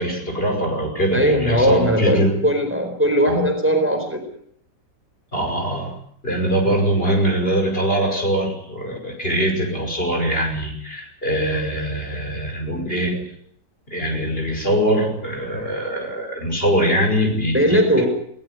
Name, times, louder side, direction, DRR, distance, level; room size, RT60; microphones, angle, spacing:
voice 1, 0.0-2.4 3.3-3.4 5.3-5.9 6.2-13.2 13.9-18.0, right 1 dB, 30° left, 3 dB, 5.8 m, -22 dB
voice 2, 1.1-4.2 6.6-6.8 17.5-18.0, equal, 5° right, 5 dB, 4.3 m, -19 dB
19.5 x 19.0 x 9.5 m, 0.68 s
omnidirectional pair, 1.9 m